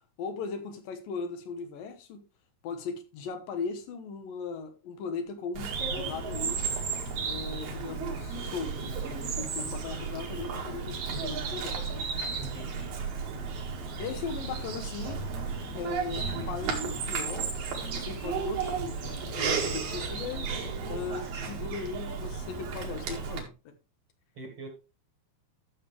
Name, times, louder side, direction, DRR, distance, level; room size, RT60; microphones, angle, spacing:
voice 1, 0.2-2.2 2.6-6.6 7.2-12.1 14.0-15.2 15.7-17.5 17.9-20.5 20.9-23.7, left 5 dB, 70° left, 2.7 m, -38 dB
Bird vocalization bird call bird song, 5.5-23.4, right 5 dB, 80° right, 4.0 m, -33 dB
voice 2, 12.3-12.9 21.2-21.3 24.4-24.7, right 3 dB, 45° right, 2.2 m, -44 dB
12.5 x 6.8 x 3.2 m
omnidirectional pair, 4.3 m